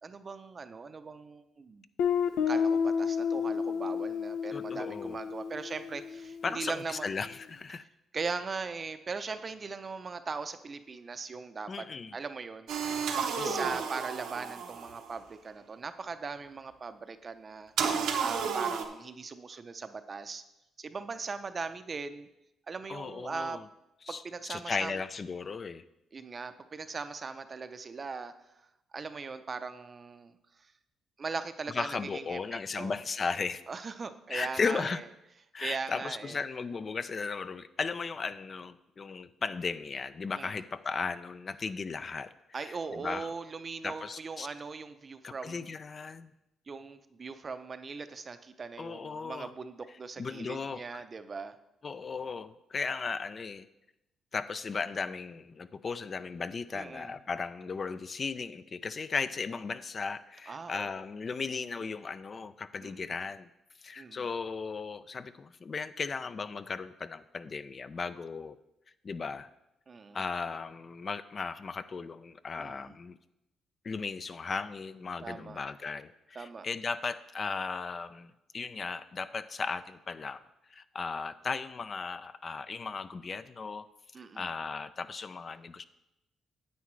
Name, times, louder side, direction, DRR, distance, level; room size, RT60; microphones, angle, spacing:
voice 1, 0.0-1.8 2.5-7.1 8.1-11.9 12.1-20.4 20.8-22.3 22.7-23.6 24.1-25.0 26.1-28.3 28.9-30.3 30.6-30.7 31.2-33.0 33.7-35.0 35.6-36.4 40.3-40.6 42.5-45.7 46.7-51.6 56.7-57.1 60.5-60.9 62.8-63.1 64.0-64.3 69.9-70.2 72.6-73.0 75.2-75.6 76.4-76.7 84.1-84.5, right 4 dB, 35° right, 10 dB, 0.5 m, -40 dB
Guitar, 2.0-6.7, left 6 dB, 90° left, 0.5 m, -31 dB
voice 2, 4.5-5.2 6.4-7.8 11.7-12.2 13.4-13.8 22.9-23.6 24.0-24.2 24.5-25.8 31.7-33.6 34.3-35.0 35.5-43.3 43.8-44.5 45.2-46.3 48.8-49.5 50.2-51.0 51.8-53.7 54.3-63.5 63.8-68.6 69.0-69.5 70.1-73.2 73.8-80.4 80.7-83.9 84.3-85.8, left 4 dB, 40° left, 13 dB, 0.4 m, -36 dB
sound 1, 12.7-15.1 17.8-18.8, right 6 dB, 80° right, 0.9 m, -32 dB
9.5 x 8.2 x 3.2 m, 0.88 s
cardioid pair, 90°, 0 cm